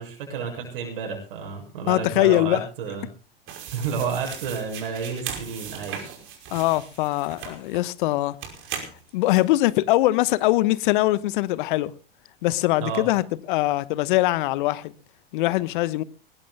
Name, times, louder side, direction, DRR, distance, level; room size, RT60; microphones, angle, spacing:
voice 1, 0.0-3.1 3.7-6.2 12.8-13.1, right 6 dB, 65° right, 7.6 m, -31 dB
voice 2, 1.9-2.7 6.5-8.3 9.1-11.9 12.4-14.9 15.3-16.0, left 17 dB, 55° left, 1.1 m, -22 dB
sound 1, 3.5-7.8 8.4-9.4, right 7 dB, 40° right, 5.6 m, -38 dB
24.0 x 20.0 x 2.2 m
hypercardioid pair, 90°, 30 cm